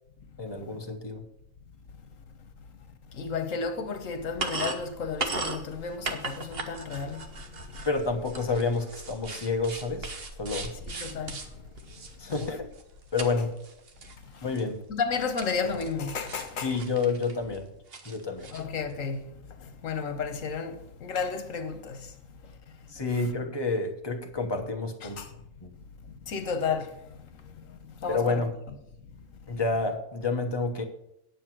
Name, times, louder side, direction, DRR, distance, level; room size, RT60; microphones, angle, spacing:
voice 1, 0.4-1.2 7.9-10.8 12.2-12.7 13.1-13.5 14.4-14.8 16.6-17.7 18.0-18.5 22.9-25.2 25.6-25.7 28.1-28.5 29.5-30.8, left 3 dB, 20° left, 1.2 m, -29 dB
voice 2, 3.2-7.2 11.0-11.4 12.3-12.5 14.9-16.7 18.5-19.2 19.8-22.0 25.0-25.3 26.3-26.9 28.0-28.4, left 5 dB, 75° left, 1.5 m, -32 dB
sound 1, 4.2-13.3 13.6-14.1 14.6-14.7 15.4-16.0 16.3-17.6 17.9-18.6, right 3 dB, 50° right, 1.2 m, -38 dB
9.8 x 7.3 x 6.1 m
omnidirectional pair, 1.4 m